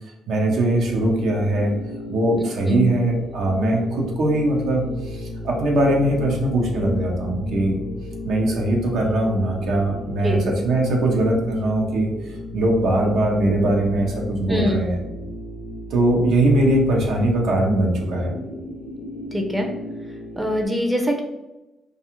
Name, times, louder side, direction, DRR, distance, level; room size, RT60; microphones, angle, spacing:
voice 1, 0.3-1.7 2.1-7.8 8.2-12.1 12.5-15.0 15.9-18.3, right 1 dB, 75° right, 0 dB, 0.6 m, -21 dB
sound 1, 0.7-20.7, left 1 dB, 50° left, 0.4 m, -34 dB
voice 2, 19.3-19.7 20.4-21.2, equal, 10° right, 2 dB, 0.4 m, -23 dB
2.4 x 2.3 x 2.9 m, 0.99 s
cardioid pair, 90°, 0 cm